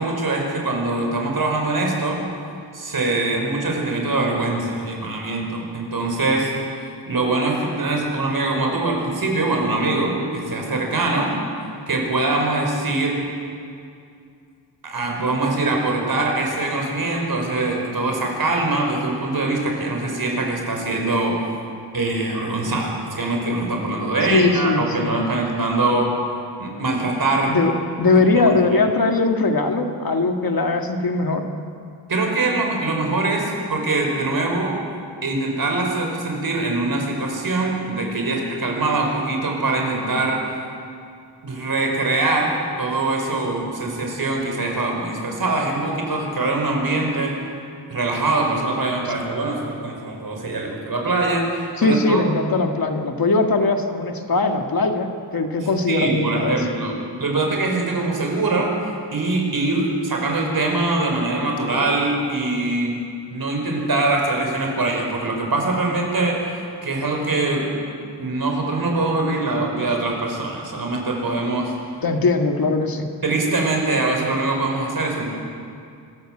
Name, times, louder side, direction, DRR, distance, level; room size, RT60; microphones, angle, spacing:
voice 1, 0.0-2.2 2.7-6.5 7.1-11.3 11.9-13.2 14.8-21.4 21.9-26.1 26.6-27.6 28.1-28.2 28.5-28.6 32.1-34.7 35.2-40.4 41.4-47.3 47.9-52.2 55.9-58.7 59.1-63.0 63.3-67.7 68.2-71.7 73.2-75.3, right 2 dB, 55° right, 1 dB, 5.1 m, -23 dB
voice 2, 24.3-25.2 27.5-27.7 28.0-31.4 49.1-49.2 51.8-56.6 72.0-73.1, left 3 dB, 55° left, 4 dB, 1.8 m, -20 dB
25.5 x 14.0 x 7.7 m, 2.4 s
wide cardioid pair, 120°, 42 cm